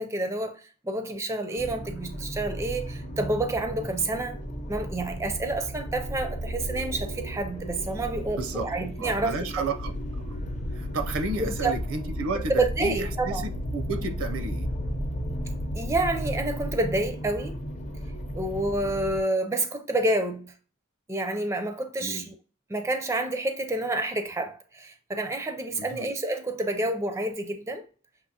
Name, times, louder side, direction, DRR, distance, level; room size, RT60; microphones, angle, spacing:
voice 1, 0.0-4.4 4.7-9.3 11.4-11.8 12.5-13.4 15.7-17.6 18.3-20.5 21.1-22.4 22.7-27.8, right 2 dB, 15° right, 0.4 m, -29 dB
sound 1, 1.6-19.2, equal, 35° left, 0.6 m, -35 dB
voice 2, 8.3-8.7 9.0-9.9 10.2-10.4 10.7-14.7 22.0-22.3 25.8-26.1, right 3 dB, 80° right, 0.6 m, -32 dB
sound 2, 9.8-16.7, left 1 dB, 75° left, 0.5 m, -36 dB
6.4 x 2.8 x 2.8 m
head